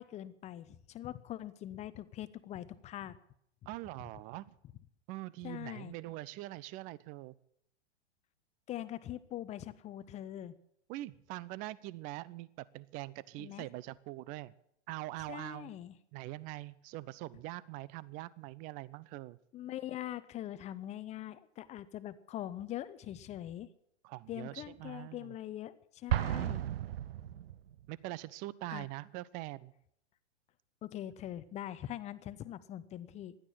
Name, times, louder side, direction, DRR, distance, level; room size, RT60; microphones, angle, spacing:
voice 1, 0.0-3.2 5.4-6.0 8.7-10.5 13.4-13.7 15.3-15.9 19.5-23.7 24.3-26.6 28.7-28.9 30.8-33.4, left 12 dB, 20° left, 15 dB, 0.8 m, -43 dB
voice 2, 3.7-4.6 5.1-7.3 10.9-12.5 12.7-14.5 14.9-15.7 16.1-19.4 24.0-25.4 26.3-26.7 27.9-29.7, right 18 dB, 25° right, 22 dB, 0.5 m, -43 dB
Explosion, 26.1-27.9, right 12 dB, 55° right, 0.8 m, -34 dB
16.0 x 11.5 x 7.4 m, 0.72 s
figure-of-eight pair, 105°, 35 cm